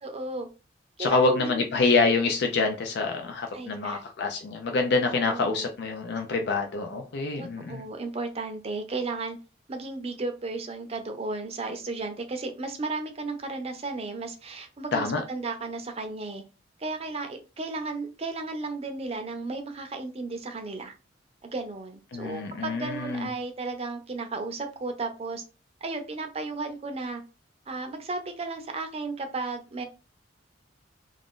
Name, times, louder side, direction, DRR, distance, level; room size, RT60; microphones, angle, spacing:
voice 1, 0.0-0.5 1.0-1.6 3.5-4.0 5.1-5.7 7.4-9.4 9.7-16.4 16.8-20.9 21.4-25.4 25.8-27.2 27.7-29.8, right 3 dB, 35° right, 6 dB, 0.5 m, -34 dB
voice 2, 1.0-7.8 14.9-15.2 22.1-23.3, left 3 dB, 60° left, 4 dB, 0.4 m, -26 dB
2.5 x 2.4 x 3.6 m, 0.31 s
head